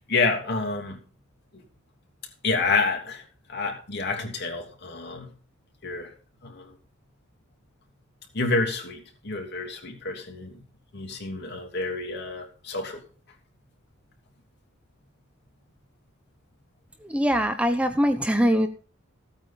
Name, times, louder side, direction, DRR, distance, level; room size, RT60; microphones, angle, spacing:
voice 1, 0.1-1.0 1.5-1.6 2.4-3.2 3.5-5.3 5.8-6.1 6.4-6.8 8.3-10.6 10.9-13.0, left 3 dB, 55° left, 3 dB, 2.9 m, -28 dB
voice 2, 17.0-18.7, equal, 5° right, 7 dB, 0.8 m, -22 dB
16.0 x 8.8 x 4.1 m, 0.38 s
head